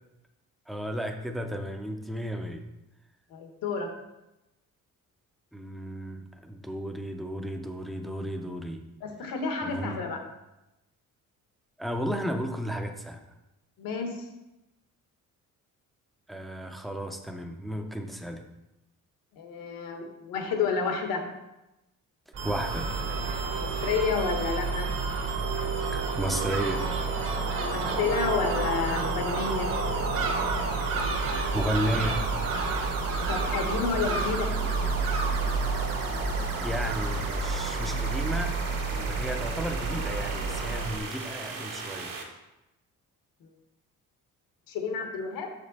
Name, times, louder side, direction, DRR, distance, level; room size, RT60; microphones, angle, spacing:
voice 1, 0.7-2.7 5.5-8.9 9.6-10.0 11.8-13.2 16.3-18.4 22.4-22.9 25.9-26.8 31.5-32.3 36.6-38.6 38.9-42.1, equal, ahead, 5 dB, 0.3 m, -33 dB
voice 2, 3.3-3.9 9.0-10.2 13.8-14.1 19.4-21.2 23.6-24.9 27.5-29.7 33.3-34.5 44.7-45.5, left 5 dB, 85° left, 4 dB, 1.2 m, -30 dB
Crow / Gull seagull, 22.3-41.0, right 3 dB, 40° right, 0.7 m, -30 dB
sound 1, 22.4-42.2, right 4 dB, 75° right, 1.2 m, -38 dB
6.6 x 5.2 x 4.0 m, 0.95 s
cardioid pair, 175°, 33 cm